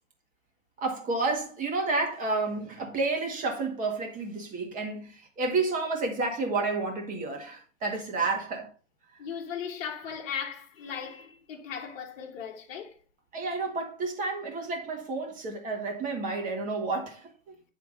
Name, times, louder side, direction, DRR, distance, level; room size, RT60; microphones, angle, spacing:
voice 1, 0.8-8.7 13.3-17.5, right 3 dB, 20° right, 1.9 m, -30 dB
voice 2, 9.2-13.0, left 7 dB, 50° left, 1.4 m, -37 dB
9.3 x 3.6 x 5.2 m
hypercardioid pair, 125°, 39 cm